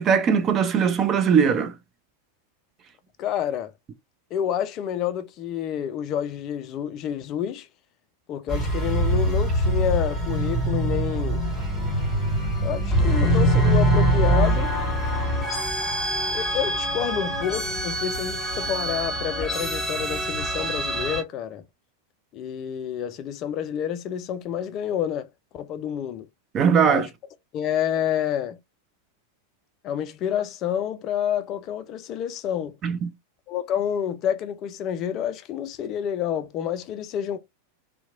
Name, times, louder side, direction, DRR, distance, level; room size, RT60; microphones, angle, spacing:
voice 1, 0.0-1.7 26.5-27.1 32.8-33.1, right 7 dB, 30° right, 0.4 m, -20 dB
voice 2, 3.2-3.7 4.3-7.7 8.3-11.4 12.6-14.7 16.3-21.6 22.3-25.3 25.5-26.3 26.8-27.1 27.5-28.6 29.8-32.7 33.5-37.4, left 9 dB, 35° left, 0.3 m, -28 dB
sound 1, 8.5-21.2, right 1 dB, ahead, 1.6 m, -24 dB
2.7 x 2.1 x 2.5 m
figure-of-eight pair, 90°, 0 cm